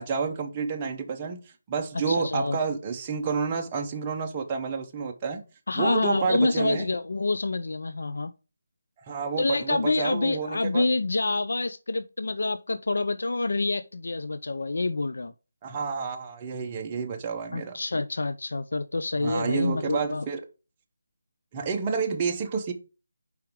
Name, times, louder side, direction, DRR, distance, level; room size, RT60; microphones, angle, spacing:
voice 1, 0.0-1.4 1.7-5.4 5.7-6.9 9.0-10.9 15.6-17.8 19.2-20.4 21.5-22.7, right 5 dB, 15° right, 0.5 m, -29 dB
voice 2, 2.1-2.6 5.7-8.3 9.4-15.3 17.5-20.2, left 3 dB, 60° left, 0.4 m, -27 dB
4.7 x 4.6 x 5.0 m
figure-of-eight pair, 175°, 0 cm